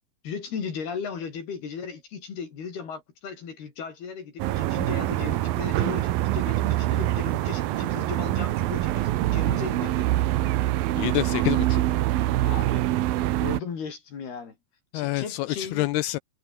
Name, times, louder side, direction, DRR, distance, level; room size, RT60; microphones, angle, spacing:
voice 1, 0.2-10.1 12.3-14.6 14.9-15.9, left 6 dB, 60° left, 5.9 m, -36 dB
sound 1, 4.4-13.6, right 15 dB, 70° right, 2.4 m, -25 dB
voice 2, 11.0-11.8 14.9-16.2, left 19 dB, 80° left, 2.3 m, -27 dB
omnidirectional pair, 5.1 m